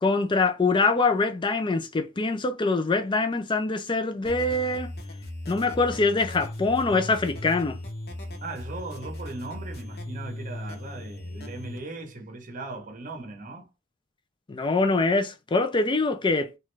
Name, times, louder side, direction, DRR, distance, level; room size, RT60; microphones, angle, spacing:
voice 1, 0.0-4.9 5.5-7.8 14.5-16.5, left 3 dB, 25° left, 0.4 m, -24 dB
sound 1, 4.2-11.8, left 1 dB, 55° left, 0.8 m, -38 dB
voice 2, 8.4-13.7, right 3 dB, 40° right, 0.8 m, -38 dB
3.1 x 2.4 x 3.1 m
head